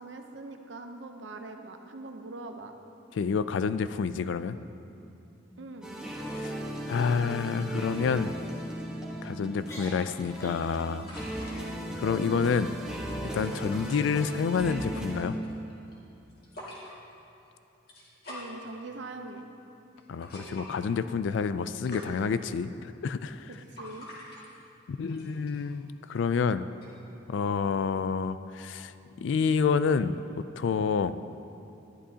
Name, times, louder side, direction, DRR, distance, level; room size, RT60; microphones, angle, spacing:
voice 1, 0.0-2.7 5.6-5.9 12.2-12.4 18.3-19.4 23.5-24.1, right 2 dB, 70° right, 5 dB, 0.7 m, -42 dB
voice 2, 3.1-4.6 6.3-6.6 6.9-8.3 9.2-11.1 11.5-12.7 13.2-15.4 20.1-23.5 24.9-26.7 27.3-30.1 30.6-31.1, left 5 dB, 75° left, 13 dB, 0.3 m, -28 dB
sound 1, 4.9-5.1 5.5-5.8 6.1-6.5 7.1-7.5 7.9-8.1 8.8-9.2 9.6-10.8, equal, 15° left, 1.2 m, -48 dB
sound 2, 5.8-15.2, right 1 dB, 5° right, 1.2 m, -37 dB
sound 3, 9.8-26.9, left 1 dB, 50° left, 2.1 m, -49 dB
12.5 x 11.0 x 2.8 m, 2.8 s
head